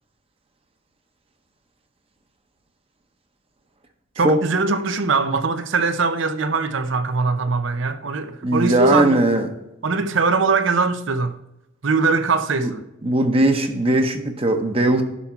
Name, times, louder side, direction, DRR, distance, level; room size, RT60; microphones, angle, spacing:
voice 1, 4.2-9.2 9.8-11.4 11.8-12.8, right 4 dB, 75° right, 0.7 m, -21 dB
voice 2, 8.4-9.5 12.6-12.7 13.0-15.0, right 1 dB, 30° right, 0.9 m, -19 dB
11.0 x 5.9 x 4.5 m
head